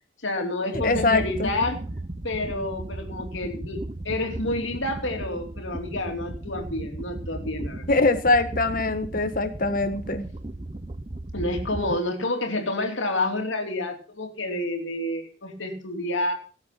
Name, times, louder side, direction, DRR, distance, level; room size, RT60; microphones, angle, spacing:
voice 1, 0.2-1.8 2.2-7.9 11.3-16.3, left 2 dB, 85° left, 4 dB, 3.0 m, -29 dB
sound 1, 0.7-12.0, right 1 dB, 25° right, 0.8 m, -36 dB
voice 2, 0.8-1.5 7.9-10.2, left 3 dB, 45° left, 10 dB, 1.4 m, -23 dB
18.0 x 8.1 x 5.9 m, 0.38 s
head